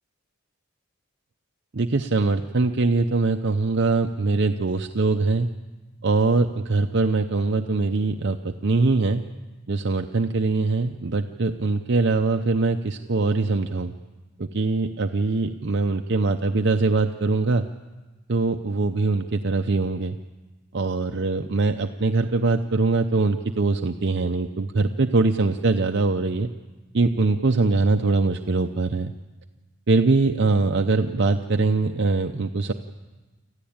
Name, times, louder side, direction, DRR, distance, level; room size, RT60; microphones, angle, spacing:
voice 1, 1.7-5.5 6.0-9.2 9.7-13.9 14.4-17.7 18.3-20.2 20.7-26.5 26.9-29.1 29.9-32.7, right 3 dB, 55° right, 5 dB, 0.7 m, -22 dB
26.0 x 14.5 x 8.8 m, 1.3 s
head